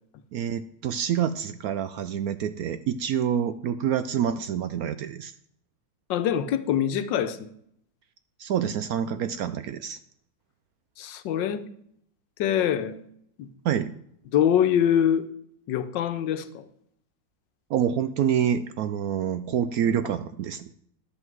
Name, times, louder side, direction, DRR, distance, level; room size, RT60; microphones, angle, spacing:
voice 1, 0.3-5.3 8.4-10.0 13.6-13.9 17.7-20.7, right 9 dB, 75° right, 12 dB, 0.8 m, -27 dB
voice 2, 6.1-7.5 11.0-11.7 12.4-13.0 13.4-13.5 14.3-15.3 15.7-16.7, left 9 dB, 80° left, 12 dB, 1.4 m, -24 dB
11.0 x 7.8 x 4.7 m, 0.69 s
omnidirectional pair, 2.0 m